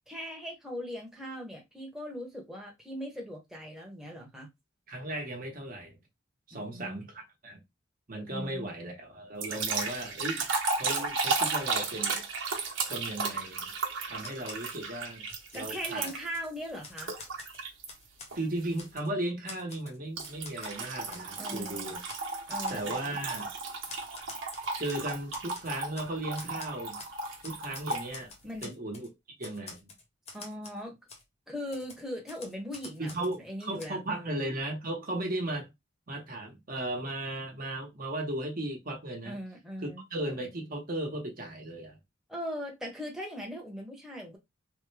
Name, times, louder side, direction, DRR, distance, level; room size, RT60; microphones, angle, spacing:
voice 1, 0.1-4.5 6.5-7.1 8.3-8.7 15.5-17.1 21.4-21.9 22.5-23.2 28.4-28.7 30.3-31.0 31.5-34.4 39.2-40.0 42.3-44.4, equal, 5° right, 0.9 m, -40 dB
voice 2, 4.9-6.0 6.5-7.6 8.1-10.5 10.7-12.2 12.9-13.7 14.1-15.3 15.5-16.1 18.3-22.0 22.7-23.5 24.8-27.0 27.4-28.3 28.6-29.1 29.4-29.9 33.0-35.7 36.1-39.4 39.8-42.0, right 1 dB, 50° right, 1.0 m, -36 dB
sound 1, 9.4-16.4 17.0-17.9 18.3-18.6 20.2-28.1, right 4 dB, 90° right, 1.0 m, -34 dB
Typewriter, 14.2-14.8 15.2-16.5 16.8-18.4 18.8-19.1 19.5-20.8 21.1-21.3 21.6-21.7 22.1-22.2 22.5-22.8 23.3-23.5 23.9-26.1 26.4-27.2 27.4-29.1 29.4-30.8 31.1-31.2 31.7-33.4 33.8-33.9, left 3 dB, 35° left, 0.8 m, -47 dB
3.4 x 2.2 x 3.2 m
head